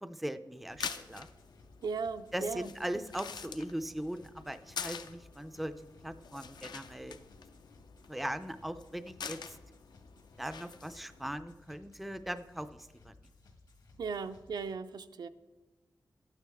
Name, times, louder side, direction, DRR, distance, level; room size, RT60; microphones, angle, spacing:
voice 1, 0.0-1.3 2.3-7.2 8.1-9.6 10.4-13.1, right 1 dB, ahead, 11 dB, 0.3 m, -39 dB
sound 1, 0.6-11.3, left 6 dB, 85° left, 0.6 m, -46 dB
sound 2, 0.7-14.7, left 2 dB, 70° left, 1.6 m, -60 dB
voice 2, 1.8-2.7 14.0-15.3, right 5 dB, 80° right, 10 dB, 0.5 m, -37 dB
12.0 x 9.1 x 3.5 m, 1.2 s
wide cardioid pair, 180°, 7 cm